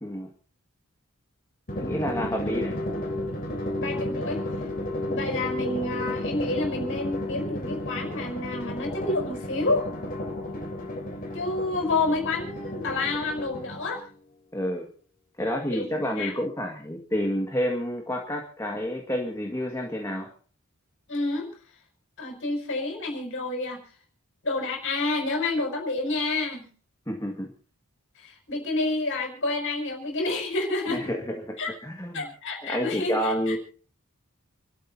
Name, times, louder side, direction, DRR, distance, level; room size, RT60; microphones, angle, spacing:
Drum, 1.7-14.0, left 1 dB, 40° left, 3.4 m, -33 dB
voice 1, 1.8-2.8 14.5-14.9 15.4-20.3 27.1-27.5 30.9-31.6 31.8-32.3 32.6-33.6, equal, 15° left, 1 dB, 1.9 m, -29 dB
voice 2, 3.8-4.4 5.0-9.9 11.3-14.0 15.7-16.4 21.1-21.5 22.2-23.8 24.4-26.7 28.2-31.1 31.6-31.7 32.1-33.5, left 2 dB, 60° left, 2 dB, 5.9 m, -29 dB
29.0 x 13.0 x 2.8 m, 0.43 s
head